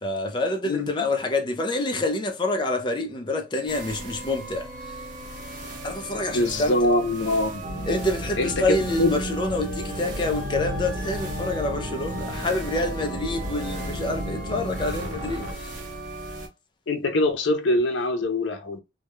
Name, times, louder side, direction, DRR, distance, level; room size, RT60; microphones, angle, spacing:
voice 1, 0.0-5.0 5.8-6.8 7.9-15.7, left 2 dB, 25° left, 0.4 m, -27 dB
sound 1, 3.7-16.5, right 2 dB, 45° right, 0.7 m, -37 dB
voice 2, 6.3-7.7 8.4-9.2 15.2-15.3 16.9-18.8, left 2 dB, 80° left, 0.5 m, -24 dB
sound 2, 7.6-15.5, equal, 75° right, 0.8 m, -33 dB
2.2 x 2.1 x 2.9 m
head